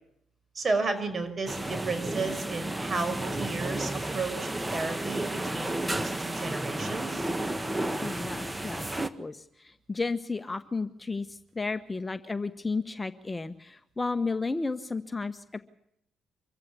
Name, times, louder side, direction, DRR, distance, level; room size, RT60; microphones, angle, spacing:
voice 1, 0.6-7.3, right 3 dB, 40° right, 10 dB, 5.3 m, -33 dB
sound 1, 1.5-9.1, right 1 dB, 15° right, 1.5 m, -32 dB
voice 2, 8.0-8.9 9.2-15.6, left 3 dB, 20° left, 11 dB, 1.1 m, -33 dB
25.5 x 15.0 x 8.5 m, 0.75 s
supercardioid pair, 65°, 0 cm